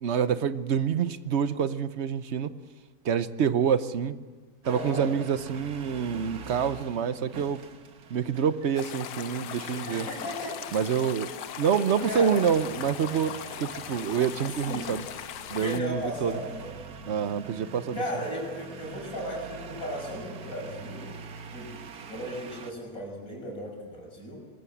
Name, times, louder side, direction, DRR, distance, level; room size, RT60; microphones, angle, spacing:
voice 1, 0.0-2.5 3.0-4.2 4.6-7.6 8.1-10.1 10.7-11.3 11.6-15.0 15.5-16.4 17.1-18.0, right 7 dB, 55° right, 13 dB, 0.9 m, -27 dB
voice 2, 4.6-5.1 9.9-10.6 12.0-12.4 14.7-14.9 15.6-16.7 17.9-21.1 21.5-21.7 22.1-24.4, equal, 60° left, -1 dB, 6.5 m, -35 dB
sound 1, 4.6-22.7, right 5 dB, 70° right, 1.8 m, -45 dB
sound 2, 8.8-15.8, left 10 dB, 90° left, 1.4 m, -39 dB
23.0 x 14.5 x 8.0 m, 1.5 s
omnidirectional pair, 1.7 m